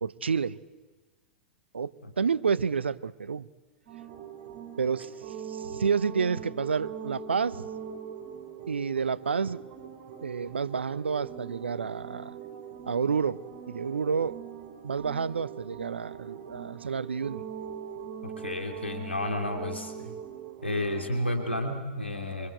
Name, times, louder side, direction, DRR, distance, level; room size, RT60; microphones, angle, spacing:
voice 1, 0.0-0.6 1.7-1.9 2.2-3.5 4.8-5.1 5.5-7.7 8.7-9.6 10.2-12.4 12.9-13.4 13.7-14.4 14.8-17.4 20.0-20.1, right 6 dB, 75° right, 0.8 m, -29 dB
sound 1, 3.9-21.7, right 7 dB, 45° right, 8.0 m, -42 dB
voice 2, 18.2-19.9 20.6-22.5, left 1 dB, 85° left, 2.7 m, -31 dB
26.5 x 25.0 x 8.0 m
figure-of-eight pair, 100°, 6 cm